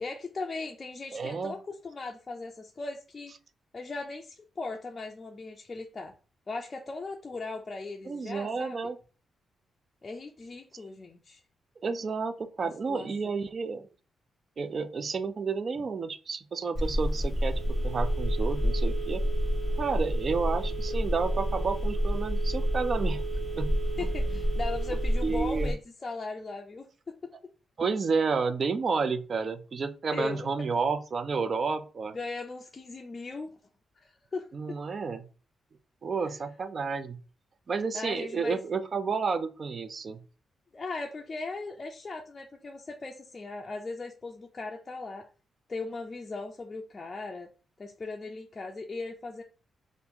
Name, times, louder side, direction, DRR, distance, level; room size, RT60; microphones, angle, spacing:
voice 1, 0.0-3.3 3.7-6.1 6.5-8.8 10.0-11.4 12.6-13.3 24.0-27.3 30.1-30.5 32.1-33.5 34.0-34.8 36.2-36.4 37.9-38.6 40.7-45.3 45.7-47.5 47.8-49.4, left 3 dB, 30° left, 2 dB, 0.4 m, -38 dB
voice 2, 1.1-1.5 8.1-9.0 11.8-13.9 14.6-19.2 19.8-23.2 23.6-23.7 24.0-24.1 25.2-25.7 27.8-32.1 34.5-35.3 36.0-37.2 37.7-40.2, right 5 dB, 45° right, 11 dB, 0.4 m, -31 dB
Telephone, 16.8-25.7, equal, ahead, 1.3 m, -29 dB
2.7 x 2.5 x 3.6 m, 0.36 s
cardioid pair, 110°, 0 cm